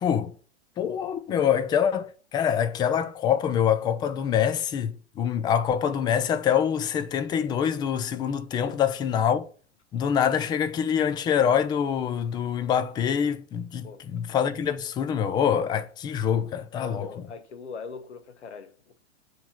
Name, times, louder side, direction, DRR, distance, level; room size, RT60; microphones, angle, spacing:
voice 1, 0.0-0.4 0.8-9.5 9.9-17.1, left 8 dB, 15° left, 0.3 m, -25 dB
voice 2, 16.8-19.0, left 5 dB, 75° left, 1.1 m, -41 dB
7.0 x 3.1 x 5.6 m
hypercardioid pair, 115°, 34 cm